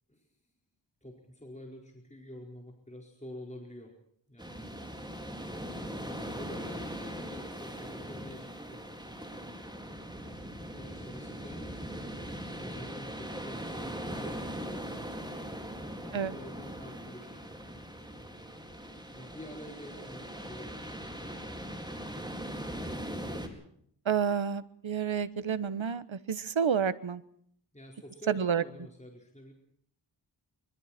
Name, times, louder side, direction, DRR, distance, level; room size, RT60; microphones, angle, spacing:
voice 1, 1.0-3.9 4.3-5.2 5.6-9.6 10.3-11.9 12.5-14.9 15.6-18.5 19.1-21.2 27.7-29.5, left 1 dB, 15° left, 1 dB, 4.7 m, -49 dB
sound 1, 4.4-23.5, equal, 10° right, 4.9 m, -40 dB
voice 2, 24.0-27.2 28.3-28.6, right 7 dB, 80° right, 14 dB, 1.4 m, -29 dB
25.5 x 24.0 x 4.4 m, 0.66 s
wide cardioid pair, 70°, 46 cm